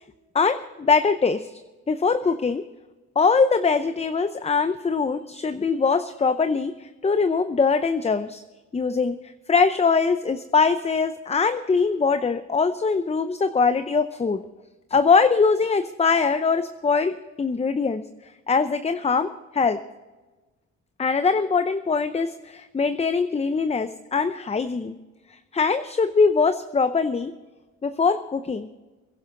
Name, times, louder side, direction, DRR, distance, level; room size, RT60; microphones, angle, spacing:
voice 1, 0.3-1.6 1.9-2.6 3.2-8.4 8.7-9.2 9.5-14.4 14.9-18.0 18.5-19.8 21.0-25.0 25.3-27.3 27.8-28.7, left 4 dB, 20° left, 10 dB, 0.7 m, -22 dB
22.0 x 11.0 x 3.9 m, 1.2 s
cardioid pair, 90°, 30 cm